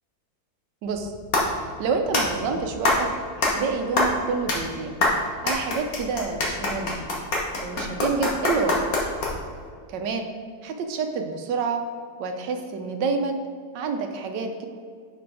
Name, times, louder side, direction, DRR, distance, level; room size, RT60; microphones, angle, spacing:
sound 1, 0.9-9.6, left 2 dB, 60° left, 1.6 m, -26 dB
voice 1, 1.8-3.1 3.4-5.0 5.4-7.0 7.6-8.8 9.9-10.3 10.6-11.8 12.2-13.4 13.7-14.7, right 4 dB, 90° right, 5 dB, 1.4 m, -28 dB
6.0 x 5.3 x 4.6 m, 2.1 s
omnidirectional pair, 1.8 m